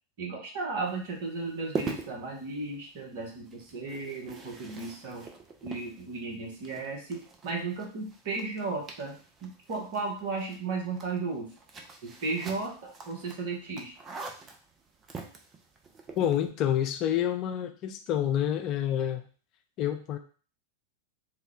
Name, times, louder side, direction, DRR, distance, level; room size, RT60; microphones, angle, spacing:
voice 1, 0.2-5.3 5.6-9.1 9.4-11.5 12.0-13.9, right 3 dB, 50° right, -1 dB, 1.0 m, -35 dB
sound 1, 0.8-16.5, right 4 dB, 25° right, 0.5 m, -44 dB
voice 2, 16.2-19.3 19.8-20.2, left 10 dB, 40° left, 6 dB, 0.4 m, -28 dB
3.2 x 2.2 x 3.6 m, 0.39 s
figure-of-eight pair, 90°, 0 cm